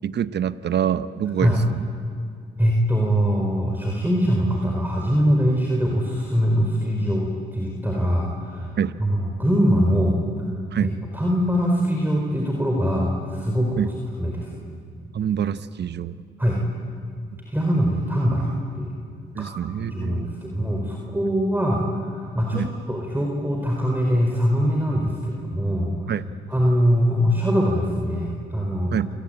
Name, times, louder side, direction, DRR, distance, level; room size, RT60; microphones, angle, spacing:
voice 1, 0.0-1.8 8.8-9.0 10.7-10.9 13.8-13.9 15.1-16.2 19.3-20.3 22.5-22.7 26.1-26.3 28.9-29.1, right 9 dB, 60° right, 15 dB, 0.9 m, -26 dB
voice 2, 2.6-8.7 9.0-10.2 10.8-13.9 14.2-14.6 16.4-16.6 17.5-18.9 19.4-19.5 19.8-26.1 26.5-29.0, equal, 10° right, -1 dB, 4.5 m, -22 dB
28.0 x 18.5 x 9.0 m, 2.2 s
supercardioid pair, 55°, 20 cm